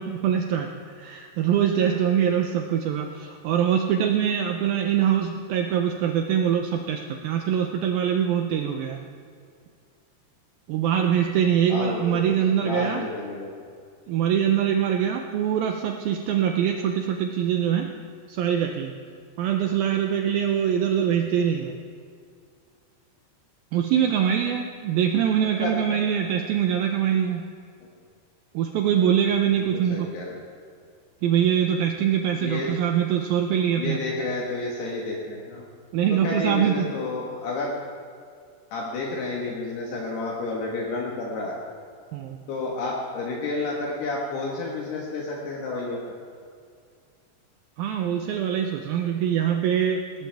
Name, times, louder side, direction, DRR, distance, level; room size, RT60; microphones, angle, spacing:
voice 1, 0.0-9.0 10.7-13.1 14.1-17.9 18.3-18.9 19.4-21.8 23.7-27.5 28.5-30.1 31.2-34.0 35.9-36.9 42.1-42.4 47.8-50.3, right 9 dB, 80° right, 4 dB, 2.2 m, -23 dB
voice 2, 11.7-12.2 12.6-13.5 25.6-25.8 29.6-30.4 32.4-32.7 33.8-35.7 36.2-37.7 38.7-41.6 42.5-46.2, left 3 dB, 70° left, -3 dB, 3.5 m, -30 dB
19.5 x 19.0 x 3.5 m, 2.2 s
omnidirectional pair, 5.0 m